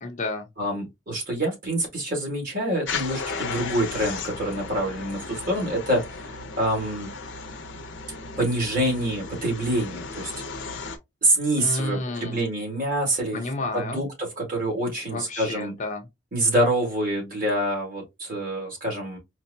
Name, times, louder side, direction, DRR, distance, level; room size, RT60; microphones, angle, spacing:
voice 1, 0.0-0.5 11.5-12.4 13.3-14.1 15.1-16.1, left 2 dB, 40° left, 0.7 m, -31 dB
voice 2, 0.6-6.0 6.6-7.1 8.4-10.3 11.2-13.4 13.7-15.7 16.3-19.2, right 1 dB, 50° right, 2.0 m, -26 dB
sound 1, 2.9-11.0, left 4 dB, 90° left, 0.7 m, -35 dB
4.5 x 2.1 x 2.6 m
head